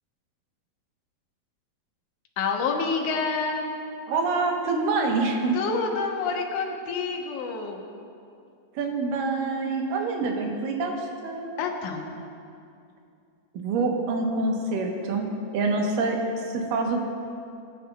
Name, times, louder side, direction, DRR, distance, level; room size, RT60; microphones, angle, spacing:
voice 1, 2.4-3.7 5.5-7.8 11.6-12.2, left 4 dB, 70° left, 1 dB, 2.4 m, -28 dB
voice 2, 4.1-5.6 8.8-11.6 13.5-17.0, right 3 dB, 85° right, 1 dB, 2.8 m, -26 dB
22.5 x 9.4 x 2.3 m, 2.5 s
omnidirectional pair, 3.8 m